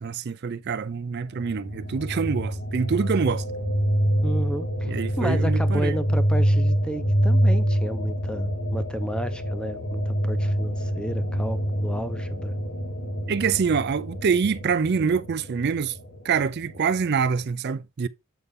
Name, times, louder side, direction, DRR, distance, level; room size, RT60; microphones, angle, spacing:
voice 1, 0.0-3.4 4.9-6.0 13.3-16.0 16.2-18.1, right 6 dB, 50° right, 0.4 m, -25 dB
sound 1, 1.3-17.5, equal, 80° left, 1.8 m, -26 dB
voice 2, 4.2-12.5, equal, 5° left, 0.7 m, -32 dB
8.0 x 5.5 x 3.6 m
head